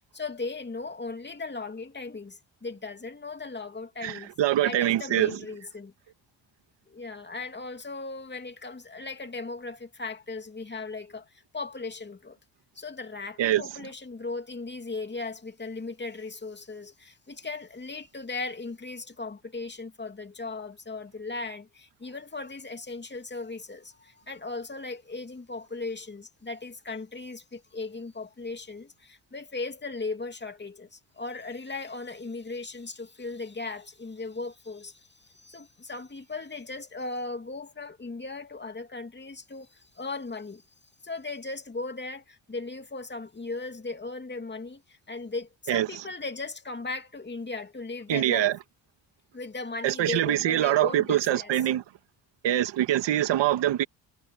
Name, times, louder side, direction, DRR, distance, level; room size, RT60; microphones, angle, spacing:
voice 1, 0.1-4.3 4.6-5.9 6.9-12.4 12.7-40.6 41.0-48.6 49.3-51.5, left 3 dB, 25° left, 2.7 m, -37 dB
voice 2, 4.0-5.3 13.4-13.6 45.7-45.9 48.1-48.6 49.8-51.8 52.4-53.8, right 13 dB, 80° right, 2.0 m, -24 dB
cardioid pair, 80°, 43 cm